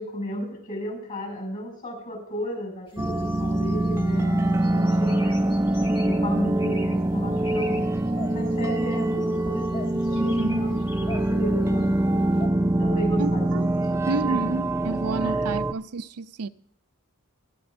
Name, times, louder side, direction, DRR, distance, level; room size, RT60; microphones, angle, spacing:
voice 1, 0.0-5.3 6.0-7.8 8.3-12.2 12.8-13.6 13.9-14.6 15.2-15.4, equal, 40° left, 6.4 m, -34 dB
sound 1, 3.0-4.2 4.6-6.2 6.6-6.9 7.3-7.8 8.1-9.4 9.7-11.8 12.4-12.5, left 2 dB, 25° left, 1.4 m, -41 dB
sound 2, 3.0-15.7, right 1 dB, 15° right, 0.4 m, -24 dB
voice 2, 10.1-10.6 13.2-13.7 14.1-16.5, right 3 dB, 90° right, 0.5 m, -30 dB
22.5 x 12.0 x 2.7 m
head